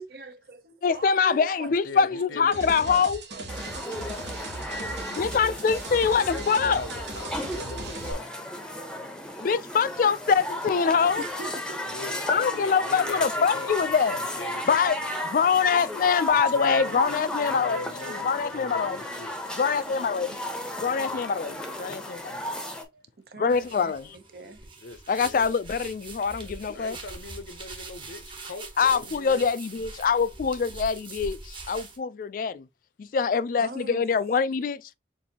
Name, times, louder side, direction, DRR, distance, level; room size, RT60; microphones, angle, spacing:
voice 1, 0.0-2.4 3.3-5.4 11.2-11.8 22.9-24.7 33.6-34.1, right 3 dB, 55° right, 0.7 m, -44 dB
voice 2, 0.8-3.2 5.1-6.8 9.4-11.2 12.3-14.2 14.7-15.0 15.3-17.8 18.2-19.0 19.6-20.4 20.8-22.4 23.4-24.0 25.1-27.0 28.8-32.6 33.0-34.8, left 6 dB, 50° left, 0.3 m, -24 dB
voice 3, 1.8-3.1 6.1-8.3 11.0-11.3 11.9-15.1 16.3-17.1 17.4-19.4 20.8-21.3 24.4-25.5 26.4-29.5, left 3 dB, 85° left, 0.7 m, -41 dB
sound 1, 2.5-8.1, right 2 dB, 75° right, 1.6 m, -38 dB
sound 2, 3.5-22.8, left 1 dB, 5° left, 0.7 m, -34 dB
sound 3, 23.5-32.0, right 3 dB, 25° right, 1.1 m, -42 dB
6.9 x 2.6 x 2.8 m
head